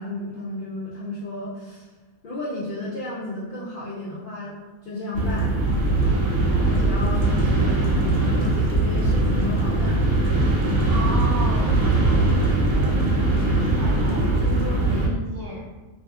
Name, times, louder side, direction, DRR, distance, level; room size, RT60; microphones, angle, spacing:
voice 1, 0.0-1.9 2.2-5.6 6.6-10.0, left 2 dB, 65° left, -8 dB, 0.5 m, -33 dB
sound 1, 5.1-15.1, right 2 dB, 70° right, 1.0 m, -21 dB
voice 2, 10.9-13.1 13.5-15.6, equal, 50° right, -7 dB, 0.8 m, -34 dB
2.8 x 2.4 x 2.3 m, 1.2 s
omnidirectional pair, 1.4 m